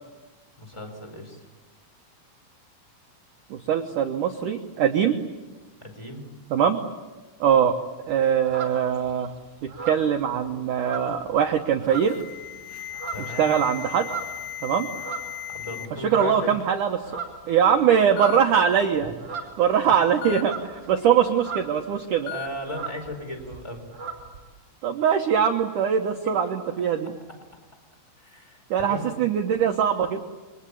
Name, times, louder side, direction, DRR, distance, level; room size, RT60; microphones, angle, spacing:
voice 1, 0.6-1.4 5.8-6.2 13.1-13.5 15.5-16.4 19.0-19.1 22.3-23.9 26.2-26.3 26.8-26.9 28.2-29.0, equal, 5° left, 4 dB, 4.3 m, -37 dB
voice 2, 3.5-5.2 6.5-6.8 7.4-7.7 8.1-9.3 9.6-12.2 13.4-14.1 14.6-14.9 16.1-17.0 17.5-19.1 19.6-22.3 24.8-27.1 28.7-30.2, right 8 dB, 85° right, 4 dB, 1.8 m, -22 dB
sound 1, 8.1-9.2 9.6-11.5 11.8-12.3 12.7-15.7 16.0-16.6 16.8-21.9 22.2-22.3 22.5-24.4, right 5 dB, 20° right, 5.2 m, -38 dB
Alarm, 11.9-15.9 16.2-16.6 17.5-17.6 18.2-18.4 20.2-20.4 22.3-22.5, left 11 dB, 70° left, 3.5 m, -36 dB
29.0 x 24.0 x 8.6 m, 1.2 s
omnidirectional pair, 5.5 m